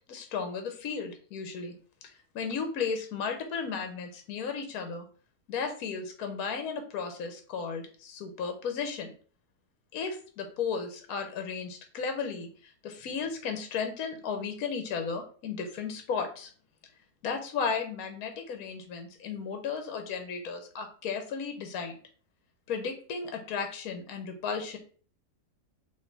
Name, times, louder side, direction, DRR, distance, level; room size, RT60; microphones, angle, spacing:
voice 1, 0.1-1.7 2.0-5.1 5.5-9.1 9.9-16.5 17.2-21.9 22.7-24.8, left 5 dB, 65° left, 6 dB, 1.2 m, -34 dB
4.4 x 3.0 x 3.9 m, 0.42 s
omnidirectional pair, 1.8 m